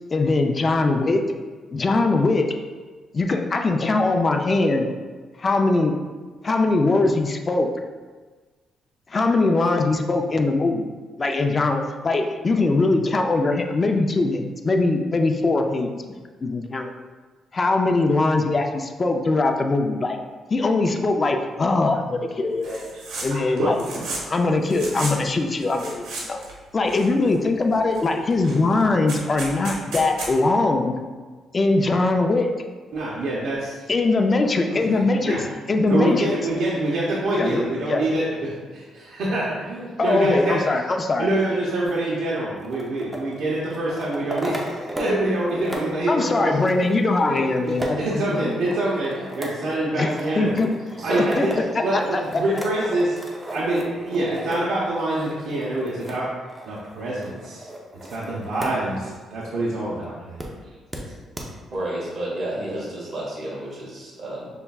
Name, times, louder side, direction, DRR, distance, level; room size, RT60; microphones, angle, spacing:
voice 1, 0.1-1.2 1.7-2.5 3.1-4.9 5.4-5.9 6.4-7.7 9.1-10.8 11.2-16.9 17.5-20.2 20.5-23.0 23.2-23.8 24.2-26.4 26.7-31.0 31.5-32.5 33.9-36.3 37.3-37.6 37.9-38.0 40.0-41.3 46.1-48.0 48.4-48.5 49.9-50.1 50.4-50.7 51.2-51.5 51.7-51.8 52.1-52.2, left 3 dB, 30° left, 4 dB, 0.4 m, -21 dB
sound 1, 22.6-23.3 23.6-24.3 24.7-25.2 25.6-26.5 26.9-27.5 27.9-28.0 28.3-30.3, right 2 dB, 85° right, 1.0 m, -33 dB
voice 2, 23.3-23.7 32.9-33.8 34.7-35.4 35.9-40.6 41.2-47.0 47.3-50.5 51.0-51.5 51.8-53.2 53.5-56.3 56.7-57.7 58.1-60.4, right 1 dB, 65° right, -6 dB, 0.8 m, -26 dB
sound 2, 41.8-45.2 45.5-58.8 59.1-59.2 60.4-60.5 60.9-61.0 61.4-61.5, right 1 dB, 10° right, 0.6 m, -35 dB
voice 3, 61.7-64.5, right 1 dB, 40° right, -6 dB, 1.3 m, -30 dB
5.5 x 3.4 x 2.3 m, 1.4 s
cardioid pair, 120°, 0 cm